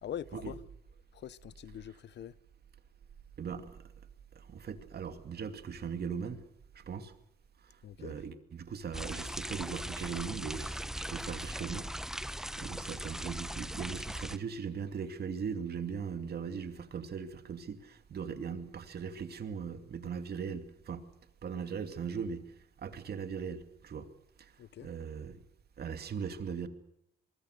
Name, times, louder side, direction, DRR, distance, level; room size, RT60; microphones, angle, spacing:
voice 1, 0.0-0.6 1.1-2.3 7.8-8.2 24.6-24.9, left 10 dB, 60° left, 0.8 m, -43 dB
voice 2, 3.4-3.9 4.3-6.4 6.7-7.1 7.6-11.9 12.1-21.1 21.4-24.1 24.4-24.5 24.8-25.4 25.8-26.7, right 6 dB, 55° right, 2.5 m, -39 dB
sound 1, 8.9-14.4, equal, ahead, 0.9 m, -39 dB
24.5 x 22.5 x 6.6 m
cardioid pair, 90°, 20 cm